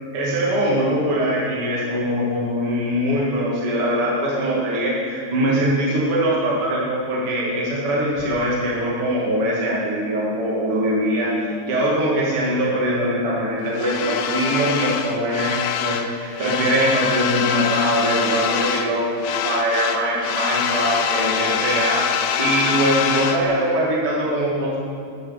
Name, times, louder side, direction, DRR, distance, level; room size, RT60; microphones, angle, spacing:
voice 1, 0.1-24.8, right 1 dB, 45° right, -6 dB, 2.1 m, -22 dB
sound 1, 13.8-16.1 16.4-18.9 19.2-23.4, left 9 dB, 85° left, 3.0 m, -24 dB
11.5 x 10.5 x 7.1 m, 2.4 s
omnidirectional pair, 5.1 m